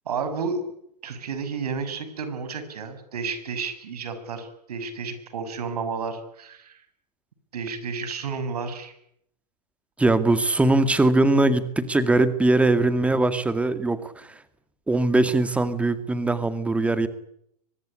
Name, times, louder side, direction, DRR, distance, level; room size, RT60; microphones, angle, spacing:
voice 1, 0.0-0.6 1.0-6.8 7.5-8.9, right 5 dB, 75° right, 11 dB, 6.6 m, -31 dB
voice 2, 10.0-14.3 14.9-17.1, right 2 dB, 5° right, 12 dB, 2.2 m, -21 dB
24.0 x 20.5 x 10.0 m, 0.73 s
hypercardioid pair, 125°, 20 cm